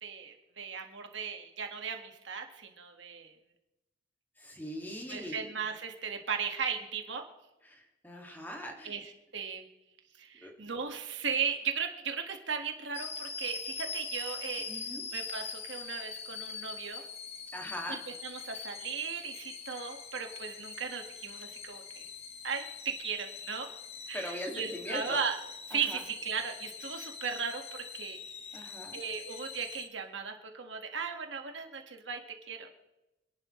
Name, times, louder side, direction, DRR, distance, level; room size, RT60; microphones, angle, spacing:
voice 1, 0.0-3.3 5.1-7.2 8.8-9.6 10.2-14.9 15.1-17.0 17.9-18.0 18.2-22.1 22.4-23.7 24.1-25.3 25.7-28.2 28.5-32.7, right 6 dB, 65° right, 4 dB, 1.9 m, -37 dB
voice 2, 4.4-5.4 7.6-8.9 10.4-10.5 14.7-15.0 17.5-18.0 24.1-25.2 25.7-26.0 28.5-29.0, equal, 10° left, 1 dB, 2.3 m, -41 dB
sound 1, 12.9-29.9, left 5 dB, 35° left, 1.2 m, -43 dB
26.0 x 11.5 x 3.3 m, 0.95 s
head